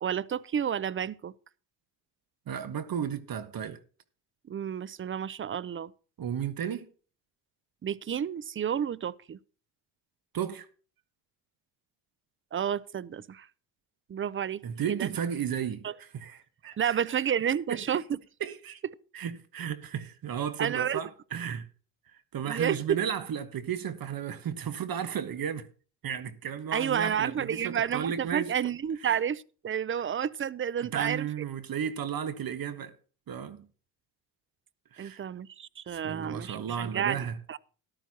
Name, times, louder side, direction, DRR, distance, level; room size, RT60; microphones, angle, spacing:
voice 1, 0.0-1.3 4.5-5.9 7.8-9.4 12.5-13.5 14.1-14.6 14.9-15.1 15.8-15.9 16.8-18.2 20.6-21.0 22.4-23.0 26.7-31.3 35.0-37.6, right 8 dB, 25° right, 0.5 m, -30 dB
voice 2, 2.5-3.8 6.2-6.9 10.3-10.7 14.6-17.0 17.7-18.0 18.4-18.8 19.1-21.7 22.3-25.7 26.0-28.5 30.8-32.9 33.3-33.7 34.9-35.2 35.9-37.4, right 8 dB, 45° right, 1.3 m, -34 dB
13.5 x 11.5 x 2.9 m
supercardioid pair, 70°, 48 cm